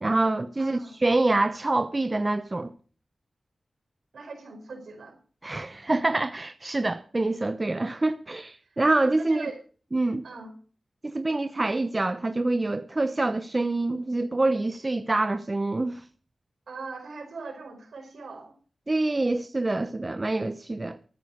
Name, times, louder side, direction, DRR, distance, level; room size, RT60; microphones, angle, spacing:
voice 1, 0.0-2.7 5.4-9.5 9.9-10.3 11.0-16.0 18.9-21.0, right 2 dB, 35° right, 0.8 m, -26 dB
voice 2, 0.6-1.0 4.1-5.2 9.2-9.6 10.2-10.5 16.7-18.5, right 4 dB, 85° right, 4.8 m, -40 dB
13.5 x 9.1 x 6.5 m
cardioid pair, 60°, 0 cm